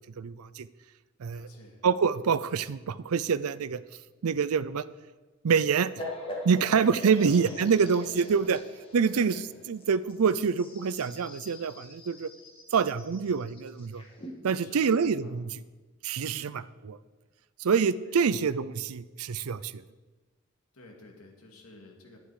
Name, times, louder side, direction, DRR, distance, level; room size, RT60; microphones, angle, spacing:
voice 1, 0.2-0.7 1.2-1.5 1.8-3.8 4.2-4.9 5.4-5.9 6.4-8.6 8.9-12.3 12.7-14.0 14.4-15.6 16.0-17.0 17.6-19.8, right 6 dB, 90° right, 17 dB, 0.5 m, -26 dB
voice 2, 1.3-1.8 6.6-7.4 9.1-9.7 14.6-15.4 16.3-16.5 18.1-18.4 20.7-22.2, left 1 dB, 80° left, 1 dB, 2.3 m, -51 dB
sound 1, 6.0-14.3, left 1 dB, 25° left, 2.0 m, -43 dB
11.5 x 10.5 x 4.9 m, 1.2 s
head